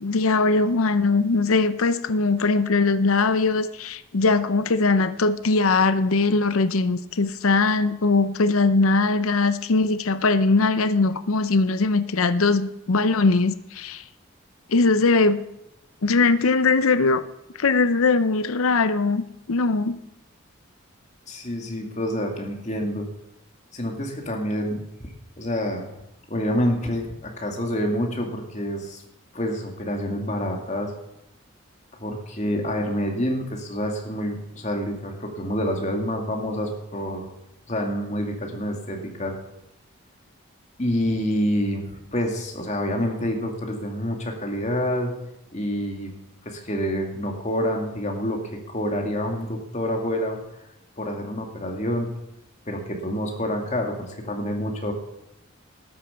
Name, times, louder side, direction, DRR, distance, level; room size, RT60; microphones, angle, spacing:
voice 1, 0.0-14.0 14.7-15.4 16.0-17.2 17.6-20.0, left 3 dB, 80° left, 12 dB, 0.7 m, -21 dB
voice 2, 21.3-23.1 23.7-25.1 25.4-25.9 26.3-29.0 29.3-30.9 32.0-37.3 37.7-39.4 40.8-45.1 45.5-46.1 46.5-48.4 48.7-50.4 51.0-52.1 52.7-54.9, equal, 35° left, 2 dB, 2.1 m, -27 dB
12.5 x 8.8 x 6.9 m, 0.86 s
head